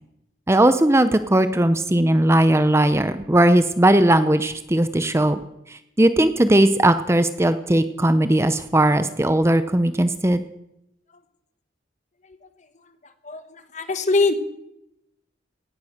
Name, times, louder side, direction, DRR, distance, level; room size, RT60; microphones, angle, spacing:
voice 1, 0.5-5.4 5.7-10.4, right 1 dB, 15° right, 12 dB, 0.6 m, -18 dB
voice 2, 13.2-14.3, left 3 dB, 40° left, 10 dB, 1.2 m, -22 dB
17.0 x 9.7 x 6.5 m, 0.84 s
head